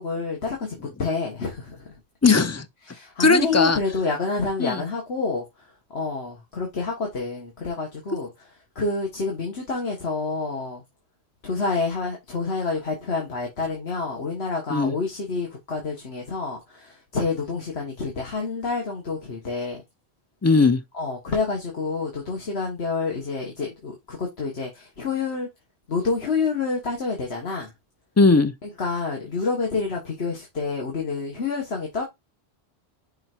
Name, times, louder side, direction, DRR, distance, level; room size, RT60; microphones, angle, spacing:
voice 1, 0.0-2.0 2.8-8.5 8.7-10.8 11.4-19.8 20.9-25.5 25.9-27.7 28.6-32.0, left 4 dB, 70° left, 1.7 m, -28 dB
voice 2, 2.2-2.7 3.2-3.8 4.6-4.8 14.7-14.9 20.4-20.8 28.2-28.5, left 3 dB, 25° left, 0.3 m, -18 dB
5.8 x 3.9 x 4.4 m
omnidirectional pair, 1.1 m